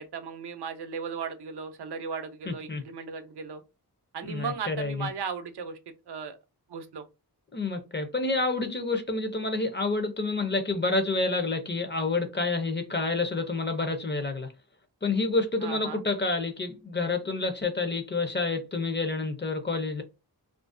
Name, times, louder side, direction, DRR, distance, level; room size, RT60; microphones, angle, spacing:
voice 1, 0.0-3.6 4.1-5.8 6.1-6.4 6.7-7.1 15.6-16.0, right 6 dB, 80° right, 0.5 m, -36 dB
voice 2, 2.5-2.8 4.2-5.1 7.5-14.5 15.0-20.0, left 3 dB, 30° left, 0.5 m, -28 dB
2.5 x 2.0 x 2.4 m
wide cardioid pair, 80°, 39 cm